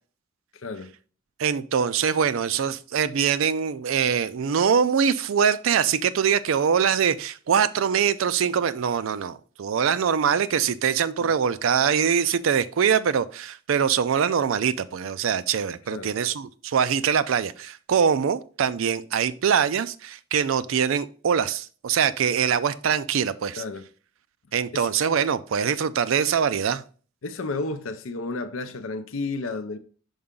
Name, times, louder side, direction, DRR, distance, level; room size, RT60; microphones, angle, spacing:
voice 1, 0.5-0.9 11.2-11.3 15.9-16.1 23.6-23.9 24.7-24.9 27.2-29.8, left 3 dB, 75° left, 0.6 m, -32 dB
voice 2, 1.4-23.6 24.5-26.8, right 7 dB, 70° right, 0.4 m, -23 dB
5.4 x 4.8 x 3.6 m
head